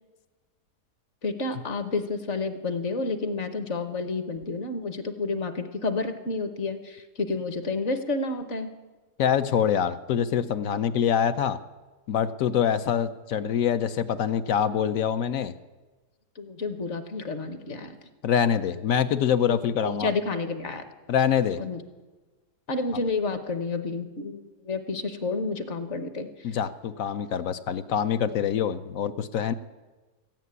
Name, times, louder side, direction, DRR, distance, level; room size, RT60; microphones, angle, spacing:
voice 1, 1.2-8.7 16.4-18.0 19.5-19.6 19.8-20.8 21.6-21.8 22.7-26.5, left 3 dB, 50° left, 9 dB, 1.3 m, -30 dB
voice 2, 9.2-11.6 12.1-15.5 18.2-20.1 21.1-21.6 26.4-29.5, left 8 dB, 65° left, 11 dB, 0.9 m, -25 dB
14.5 x 9.2 x 9.6 m, 1.2 s
omnidirectional pair, 1.7 m